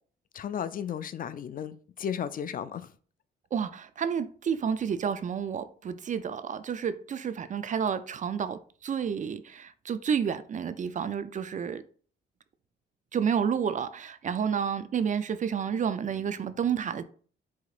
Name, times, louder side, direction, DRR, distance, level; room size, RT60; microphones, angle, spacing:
voice 1, 0.3-2.9, left 8 dB, 45° left, 0.4 m, -34 dB
voice 2, 3.5-11.8 13.1-17.0, right 7 dB, 40° right, 0.4 m, -30 dB
4.9 x 3.9 x 2.4 m
cardioid pair, 90°, 20 cm